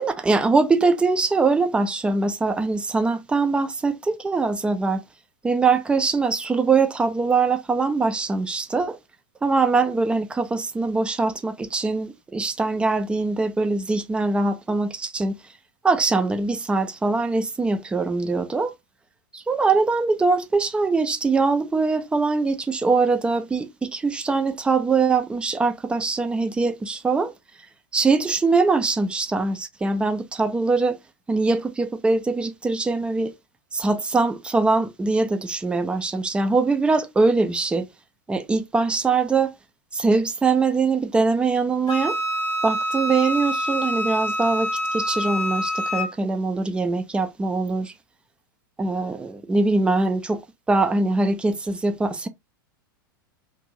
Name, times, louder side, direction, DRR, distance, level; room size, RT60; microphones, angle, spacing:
voice 1, 0.0-5.0 5.4-9.0 9.4-15.4 15.8-18.7 19.3-27.3 27.9-31.0 31.3-33.3 33.7-37.9 38.3-39.5 39.9-42.2 42.6-47.9 48.8-50.4 50.7-52.3, right 3 dB, 10° right, 0.4 m, -22 dB
Wind instrument woodwind instrument, 41.9-46.1, equal, 30° left, 0.8 m, -26 dB
2.6 x 2.5 x 3.0 m
figure-of-eight pair, 90°, 12 cm